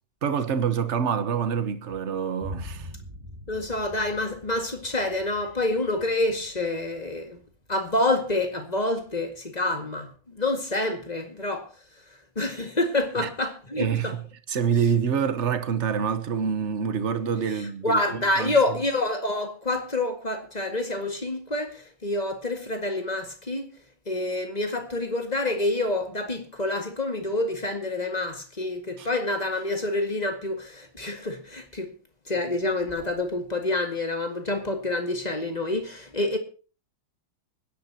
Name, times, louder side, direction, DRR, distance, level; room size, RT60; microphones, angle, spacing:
voice 1, 0.2-2.9 13.2-13.3 13.8-14.2 14.5-18.6 29.0-29.1, right 7 dB, 45° right, 1.1 m, -26 dB
Boom, 2.4-10.2, left 1 dB, 15° right, 2.4 m, -45 dB
voice 2, 3.5-7.4 7.7-11.7 12.4-14.1 17.6-23.7 24.1-31.9 32.3-36.4, left 2 dB, 20° left, 1.9 m, -27 dB
25.0 x 10.5 x 2.9 m
omnidirectional pair, 2.3 m